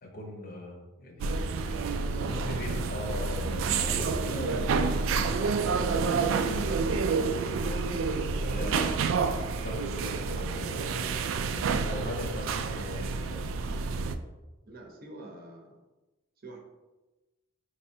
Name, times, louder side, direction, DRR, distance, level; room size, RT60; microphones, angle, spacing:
voice 1, 0.0-7.9 8.4-9.0 9.6-11.1 11.5-13.6, left 1 dB, 50° left, 1 dB, 0.9 m, -40 dB
sound 1, 1.2-14.1, right 4 dB, 85° right, 0.3 m, -29 dB
voice 2, 2.2-2.7 14.7-15.8 16.4-16.6, right 2 dB, 50° right, 1 dB, 0.7 m, -45 dB
sound 2, 3.9-8.2 8.7-8.8, equal, 20° right, 1.0 m, -46 dB
5.4 x 3.1 x 2.7 m, 1.1 s
head